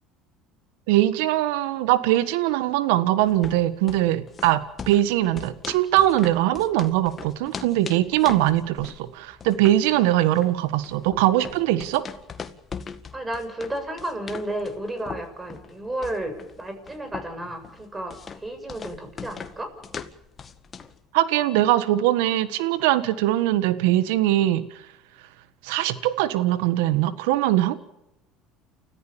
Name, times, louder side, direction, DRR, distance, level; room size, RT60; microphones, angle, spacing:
voice 1, 0.9-12.0 21.1-24.6 25.6-27.7, right 14 dB, 75° right, 14 dB, 1.5 m, -21 dB
sound 1, 3.2-21.0, left 6 dB, 35° left, 1.9 m, -40 dB
voice 2, 13.1-19.7, right 1 dB, 15° right, 7 dB, 7.0 m, -32 dB
29.5 x 14.5 x 7.2 m, 0.91 s
hypercardioid pair, 80°, 0 cm